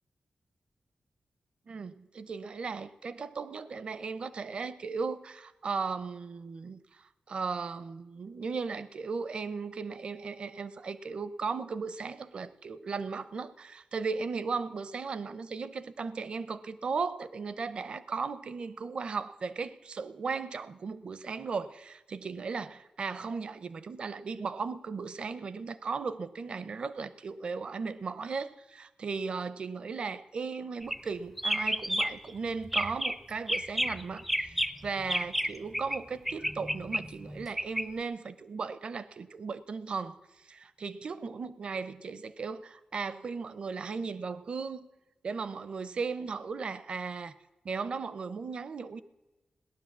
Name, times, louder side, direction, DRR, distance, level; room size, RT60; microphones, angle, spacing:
voice 1, 1.7-44.9 45.2-47.3 47.6-49.0, right 5 dB, 45° right, 15 dB, 0.6 m, -36 dB
sound 1, 30.8-31.1 31.4-32.3 32.6-33.2 33.5-36.0 36.3-37.9, equal, ahead, 0.5 m, -31 dB
17.5 x 10.5 x 7.3 m, 1.1 s
wide cardioid pair, 175°, 2 cm